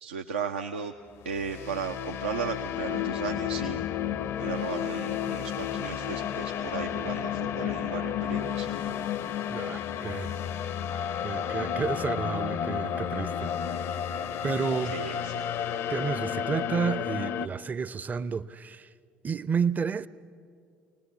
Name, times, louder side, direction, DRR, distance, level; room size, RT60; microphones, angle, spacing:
voice 1, 0.0-0.9 1.2-3.8 4.4-9.0 14.9-15.5, right 7 dB, 75° right, 0.6 m, -35 dB
sound 1, 1.2-17.5, left 9 dB, 50° left, 0.6 m, -32 dB
Bowed string instrument, 9.3-15.3, right 1 dB, 85° left, 1.0 m, -51 dB
voice 2, 9.5-10.4 11.2-13.5 14.4-14.9 15.9-18.9 19.2-20.1, right 6 dB, 30° right, 0.6 m, -31 dB
23.5 x 19.5 x 7.1 m
figure-of-eight pair, 55°, 6 cm